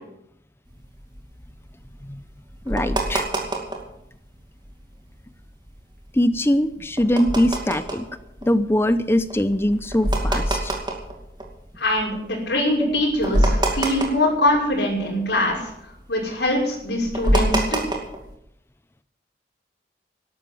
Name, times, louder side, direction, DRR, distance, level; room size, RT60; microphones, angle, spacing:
sound 1, 0.7-4.0 4.4-4.5 4.6-5.0 5.4-12.1 12.5-12.6 12.9-15.0 15.3-18.3, right 1 dB, 25° right, 2.4 m, -25 dB
voice 1, 2.7-3.2 6.1-8.1 8.4-10.7 12.8-13.0, left 1 dB, 15° left, 13 dB, 0.6 m, -22 dB
voice 2, 11.8-15.7 16.1-17.8, left 1 dB, 75° left, -1 dB, 5.9 m, -23 dB
12.5 x 12.0 x 7.8 m, 0.80 s
head